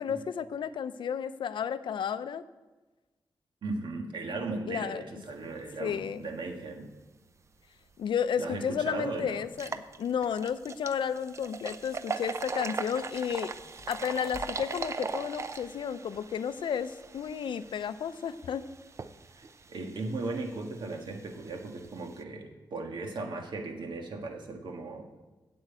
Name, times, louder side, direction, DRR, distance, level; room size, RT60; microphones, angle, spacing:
voice 1, 0.0-2.4 4.7-5.0 5.8-6.3 8.0-13.5 13.9-18.6, left 7 dB, 85° left, 13 dB, 0.5 m, -32 dB
voice 2, 3.6-6.9 8.4-9.4 19.3-25.1, right 3 dB, 75° right, 3 dB, 1.6 m, -37 dB
sound 1, 8.2-8.3 8.7-8.8 9.4-22.2, right 4 dB, 35° right, 0.5 m, -40 dB
sound 2, 13.6-15.8, left 3 dB, 25° left, 1.1 m, -52 dB
8.9 x 7.8 x 8.3 m, 1.2 s
wide cardioid pair, 140°, 8 cm